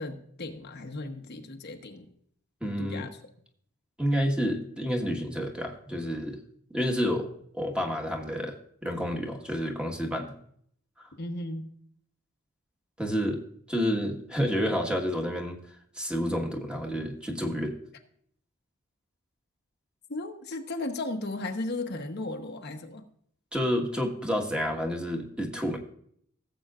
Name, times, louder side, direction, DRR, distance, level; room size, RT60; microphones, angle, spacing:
voice 1, 0.0-2.1 2.8-3.1 11.2-11.7 20.1-23.0, left 2 dB, 55° left, 4 dB, 1.0 m, -35 dB
voice 2, 2.6-3.1 4.0-6.4 6.7-7.3 7.5-10.3 11.0-11.1 13.0-13.4 13.7-15.6 15.9-17.8 23.5-25.8, equal, 5° right, 1 dB, 1.4 m, -29 dB
16.5 x 7.8 x 2.4 m, 0.64 s
head